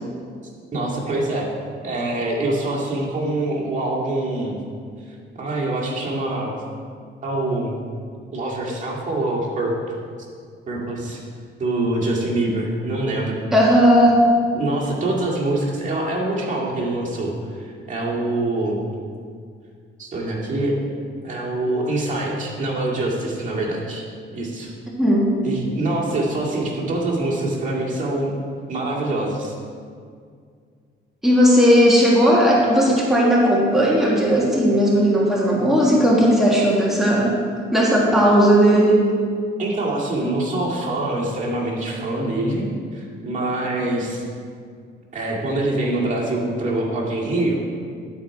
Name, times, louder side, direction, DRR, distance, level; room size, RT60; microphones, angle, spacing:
voice 1, 0.7-1.5 1.8-4.6 5.4-6.5 7.2-7.8 8.3-9.7 10.7-11.2 11.6-13.4 14.5-18.8 20.0-20.8 21.2-24.0 24.3-24.7 25.4-28.3 28.7-29.5 39.6-42.7 42.9-44.2 45.1-47.6, right 2 dB, 40° right, -4 dB, 2.0 m, -24 dB
voice 2, 13.5-14.2 25.0-25.3 31.2-37.4 37.7-39.0, equal, ahead, -5 dB, 1.6 m, -16 dB
11.5 x 4.6 x 4.8 m, 2.1 s
cardioid pair, 90°, 20 cm